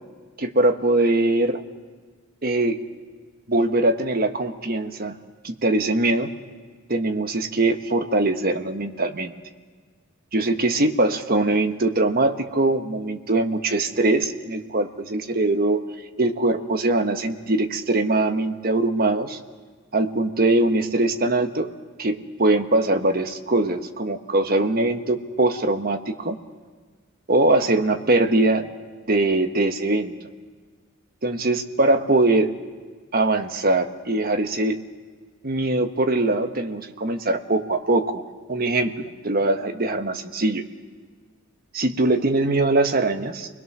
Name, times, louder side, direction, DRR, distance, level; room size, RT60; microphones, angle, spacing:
voice 1, 0.4-1.6 2.4-2.8 3.5-5.2 5.4-6.3 6.9-9.3 10.3-15.8 16.2-19.4 19.9-21.7 22.0-26.4 27.3-28.7 29.1-30.1 31.2-32.5 33.1-34.8 35.4-38.2 38.5-40.6 41.7-43.5, right 2 dB, 45° right, 6 dB, 1.3 m, -22 dB
29.5 x 21.0 x 6.1 m, 1.5 s
head